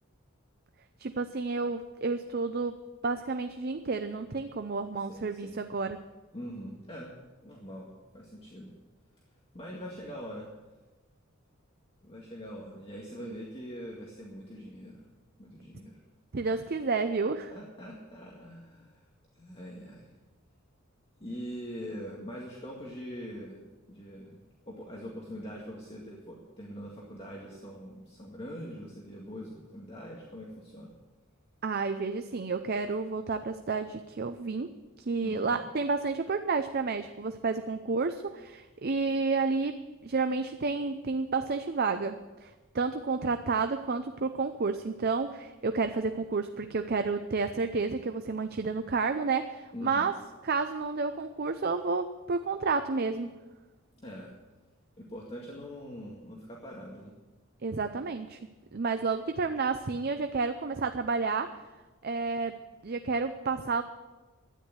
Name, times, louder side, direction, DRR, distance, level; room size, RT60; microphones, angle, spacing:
voice 1, 1.0-6.0 13.2-13.3 16.3-17.5 31.6-42.5 42.7-50.2 50.4-53.3 57.6-58.4 58.7-61.6 62.0-62.6 62.8-63.8, right 4 dB, 50° right, 8 dB, 0.6 m, -30 dB
voice 2, 5.1-5.6 6.3-7.1 7.4-8.7 9.5-10.5 12.0-15.0 15.4-16.0 16.5-16.6 17.5-19.0 19.4-20.1 21.2-23.6 23.9-24.4 24.7-30.9 35.2-35.6 49.7-50.1 54.0-54.3 55.0-57.1, equal, 30° left, -3 dB, 2.0 m, -43 dB
12.5 x 10.0 x 7.9 m, 1.2 s
head